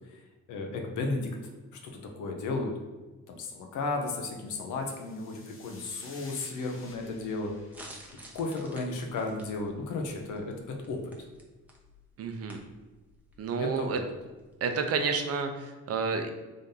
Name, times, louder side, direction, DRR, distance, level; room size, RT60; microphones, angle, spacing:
voice 1, 0.5-1.3 1.8-2.7 3.3-7.5 8.3-10.5 10.9-11.0 13.6-14.0, left 3 dB, 80° left, 2 dB, 0.8 m, -34 dB
sound 1, 4.5-9.0, left 3 dB, 45° left, 0.8 m, -53 dB
sound 2, 7.4-14.6, equal, 5° right, 0.8 m, -53 dB
voice 2, 12.2-12.6 13.4-14.0 14.6-16.3, right 5 dB, 55° right, 6 dB, 0.5 m, -30 dB
3.6 x 2.7 x 3.7 m, 1.2 s
cardioid pair, 90°, 30 cm